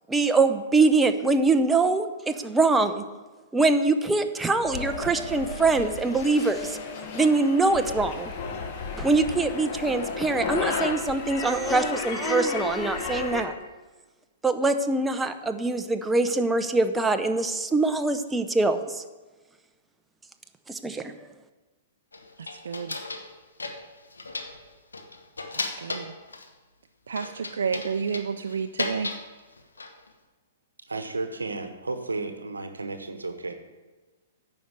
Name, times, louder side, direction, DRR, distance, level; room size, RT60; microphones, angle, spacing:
voice 1, 0.1-3.0 3.5-6.8 7.1-8.3 9.0-13.5 14.4-19.0 20.7-21.1, right 3 dB, 10° right, 8 dB, 0.6 m, -23 dB
sound 1, 4.6-13.4, left 5 dB, 45° left, 1.4 m, -33 dB
sound 2, 22.1-23.3 23.6-24.6 24.9-26.5 27.2-29.3 29.6-30.1, left 3 dB, 90° left, 1.0 m, -35 dB
voice 2, 22.4-23.0 25.5-26.1 27.1-29.1, right 6 dB, 70° right, 7 dB, 0.4 m, -31 dB
voice 3, 30.9-33.5, right 3 dB, 90° right, 8 dB, 0.9 m, -33 dB
9.4 x 5.3 x 7.4 m, 1.3 s
hypercardioid pair, 120°, 0 cm